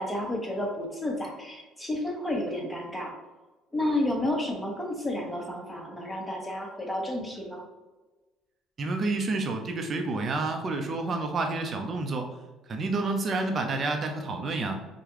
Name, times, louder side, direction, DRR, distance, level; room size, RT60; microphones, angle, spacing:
voice 1, 0.0-3.1 3.7-7.7, left 1 dB, 10° left, 0 dB, 1.2 m, -31 dB
voice 2, 8.8-12.3 12.7-14.8, right 3 dB, 45° right, 3 dB, 0.7 m, -29 dB
4.7 x 2.3 x 3.0 m, 1.2 s
hypercardioid pair, 60°, 0 cm